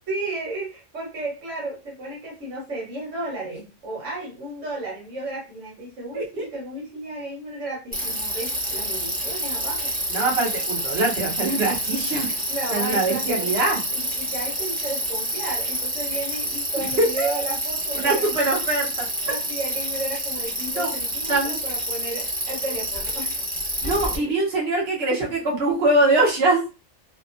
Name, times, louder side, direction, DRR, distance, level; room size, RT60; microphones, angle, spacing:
voice 1, 0.1-10.1 12.5-13.5 13.9-18.4 19.2-23.4 23.8-23.9 24.2-24.3, right 2 dB, 85° right, -3 dB, 1.5 m, -33 dB
voice 2, 6.1-6.4 10.1-12.3 12.7-13.8 17.0-17.4 17.9-19.1 20.8-20.9 21.3-21.6 23.8-26.7, right 2 dB, 55° right, -3 dB, 1.3 m, -23 dB
Bicycle, 7.9-24.2, right 1 dB, 10° right, 1.0 m, -28 dB
2.9 x 2.5 x 2.5 m, 0.30 s
omnidirectional pair, 1.3 m